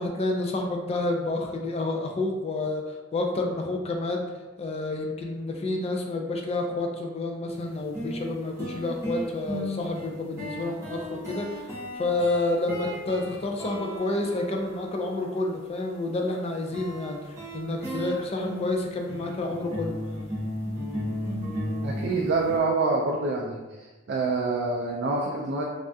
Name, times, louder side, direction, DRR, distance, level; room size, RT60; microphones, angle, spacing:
voice 1, 0.0-4.2 4.6-20.0, left 2 dB, 30° left, 2 dB, 0.4 m, -29 dB
sound 1, 7.5-7.6 7.9-15.2 16.7-22.6, equal, 15° right, 0.9 m, -35 dB
voice 2, 21.8-23.6 24.1-25.6, right 3 dB, 60° right, -2 dB, 0.4 m, -26 dB
3.3 x 2.3 x 2.6 m, 1.2 s
head